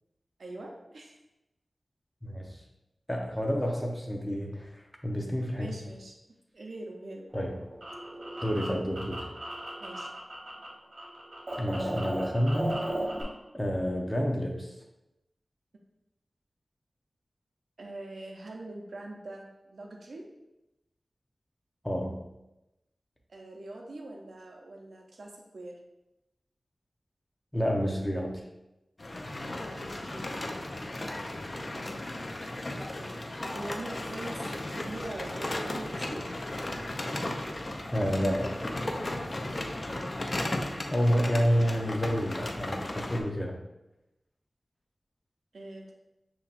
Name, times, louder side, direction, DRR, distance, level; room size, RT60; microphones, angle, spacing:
voice 1, 0.4-1.2 5.6-6.2 6.5-7.3 9.8-10.1 17.8-20.3 23.3-25.8 29.8-30.4 32.7-33.1 33.5-34.4 34.7-36.3 39.9-40.8 45.5-45.9, right 2 dB, 85° right, 1 dB, 0.6 m, -43 dB
voice 2, 2.2-2.6 3.1-5.8 7.3-7.5 8.4-9.3 11.6-12.9 13.5-14.7 21.8-22.2 27.5-28.4 37.9-38.6 40.9-43.6, equal, 10° left, 0 dB, 0.8 m, -29 dB
sound 1, 7.3-10.7 10.9-13.2, right 1 dB, 65° right, 1.4 m, -36 dB
sound 2, 29.0-43.2, left 1 dB, 45° left, 0.6 m, -35 dB
6.9 x 2.9 x 2.5 m, 0.95 s
wide cardioid pair, 50°, 0 cm